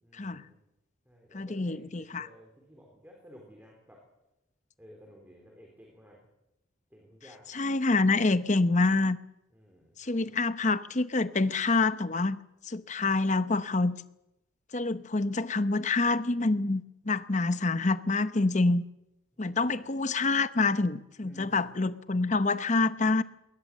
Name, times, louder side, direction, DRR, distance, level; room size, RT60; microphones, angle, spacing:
voice 1, 0.0-0.6 1.1-4.0 4.8-6.3 6.9-7.5 9.5-10.4 19.6-19.9 21.2-21.6, equal, 10° right, 0 dB, 3.7 m, -54 dB
voice 2, 1.3-2.3 7.5-9.2 10.0-14.0 14.7-18.8 19.4-23.2, left 3 dB, 35° left, 13 dB, 0.8 m, -27 dB
21.5 x 19.0 x 7.5 m, 0.90 s
head